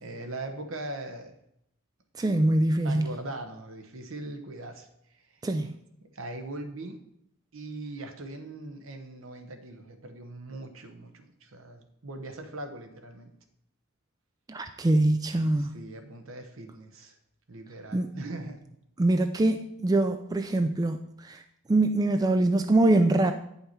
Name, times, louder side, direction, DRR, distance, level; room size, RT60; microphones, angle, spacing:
voice 1, 0.0-1.3 2.5-4.9 5.1-5.3 6.0-7.0 7.5-13.3 15.6-17.2 17.5-18.6, right 2 dB, 70° right, 6 dB, 1.1 m, -40 dB
voice 2, 2.2-3.1 5.4-5.7 14.5-15.8 17.9-18.2 19.0-21.4 21.7-23.3, right 2 dB, 15° right, 7 dB, 0.3 m, -24 dB
9.6 x 5.6 x 4.4 m, 0.75 s
head